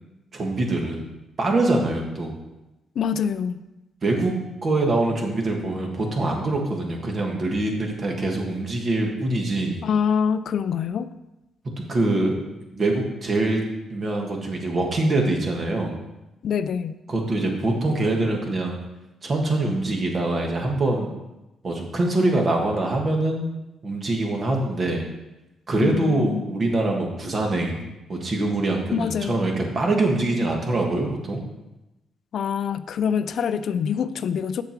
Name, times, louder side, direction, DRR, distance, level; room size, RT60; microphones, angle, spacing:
voice 1, 0.3-1.1 1.4-2.4 4.0-4.3 4.6-9.9 11.8-12.3 12.7-13.6 13.9-16.0 17.1-18.8 19.2-21.1 21.6-23.5 23.8-25.1 25.7-31.4, right 2 dB, 40° right, 1 dB, 1.7 m, -24 dB
voice 2, 3.0-3.6 9.8-11.1 16.4-17.0 25.8-26.5 28.9-29.5 32.3-34.6, left 7 dB, 65° left, 13 dB, 0.4 m, -25 dB
6.9 x 6.8 x 4.5 m, 0.97 s
cardioid pair, 90°, 0 cm